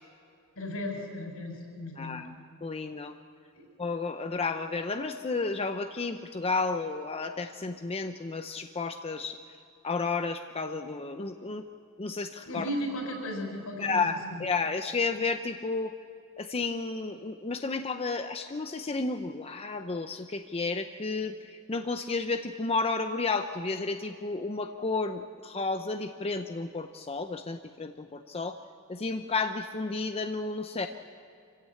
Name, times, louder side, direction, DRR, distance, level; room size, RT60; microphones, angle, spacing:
voice 1, 0.6-2.2 3.5-3.6 12.5-14.4, equal, 75° left, 1 dB, 6.2 m, -36 dB
voice 2, 2.0-2.3 2.6-3.1 3.8-9.4 9.8-11.6 12.0-12.6 13.8-15.9 16.4-28.6 28.9-30.9, left 3 dB, 25° left, 7 dB, 0.6 m, -32 dB
26.0 x 15.5 x 8.5 m, 2.5 s
head